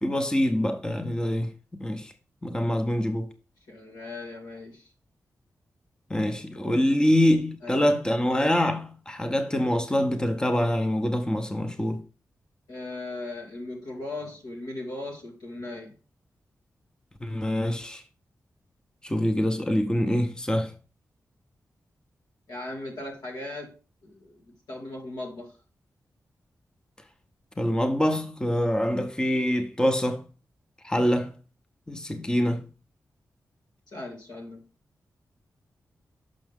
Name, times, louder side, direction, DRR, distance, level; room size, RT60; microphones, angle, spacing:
voice 1, 0.0-2.1 2.4-3.3 6.1-12.1 17.2-18.0 19.0-20.8 27.6-30.3 30.8-31.4 31.9-32.7, equal, 10° left, 0.8 m, -25 dB
voice 2, 3.7-4.9 7.6-7.9 12.7-15.9 22.5-23.7 24.0-25.5 33.9-34.6, left 2 dB, 85° left, 2.0 m, -38 dB
6.3 x 5.5 x 3.5 m
cardioid pair, 55°, 7 cm